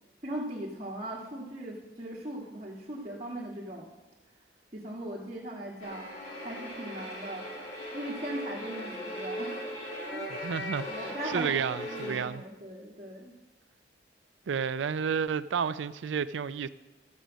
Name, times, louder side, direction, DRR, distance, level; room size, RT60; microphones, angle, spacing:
voice 1, 0.2-3.9 4.7-7.5 7.9-9.6 10.1-10.3 10.9-13.3, right 1 dB, 35° right, 1.6 m, -39 dB
sound 1, 5.8-12.2, left 1 dB, 70° left, 4.0 m, -38 dB
voice 2, 10.4-12.4 14.5-16.7, right 6 dB, 75° right, 0.4 m, -31 dB
13.0 x 8.0 x 6.2 m
head